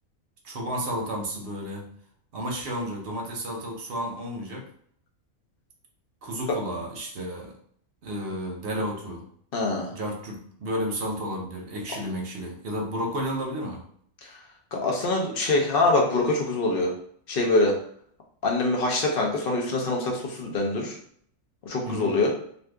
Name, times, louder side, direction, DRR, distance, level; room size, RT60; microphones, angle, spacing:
voice 1, 0.4-1.9 2.3-4.7 6.2-7.5 8.0-9.3 9.9-13.8 21.8-22.1, equal, 55° right, 0 dB, 0.8 m, -32 dB
voice 2, 9.5-9.9 14.2-14.4 14.7-16.9 17.3-17.8 18.4-21.0 21.7-22.3, left 2 dB, 50° left, 0 dB, 0.8 m, -24 dB
2.6 x 2.5 x 3.3 m, 0.63 s
omnidirectional pair, 1.4 m